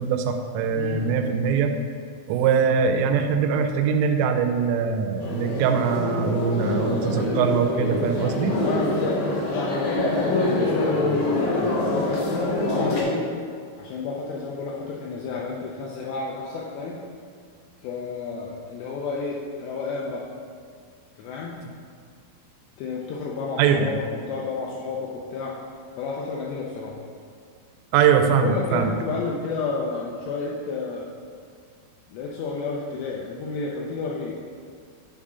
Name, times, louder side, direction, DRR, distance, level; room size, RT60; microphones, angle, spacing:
voice 1, 0.0-1.7 2.3-8.6 21.6-21.7 23.6-24.0 27.9-28.9, right 6 dB, 85° right, 6 dB, 3.2 m, -22 dB
voice 2, 0.7-1.0 8.6-11.1 11.5-13.3 13.8-17.1 17.8-20.2 21.2-21.6 22.8-24.0 24.3-25.6 26.0-27.0 28.4-31.1 32.1-34.4, left 4 dB, 90° left, -3 dB, 2.5 m, -31 dB
sound 1, 5.2-13.0, left 2 dB, 65° left, 2.0 m, -25 dB
9.9 x 3.7 x 5.5 m, 2.1 s
omnidirectional pair, 5.7 m